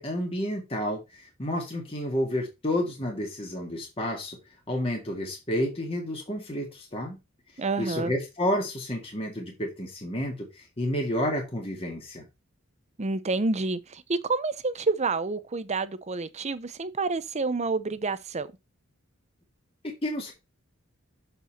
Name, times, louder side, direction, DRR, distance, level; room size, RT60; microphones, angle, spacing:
voice 1, 0.0-4.4 4.7-7.2 7.8-12.3 19.8-20.3, left 1 dB, 25° left, 1.9 m, -30 dB
voice 2, 7.6-8.1 13.0-18.5, right 3 dB, 30° right, 0.7 m, -28 dB
6.9 x 5.5 x 4.2 m
head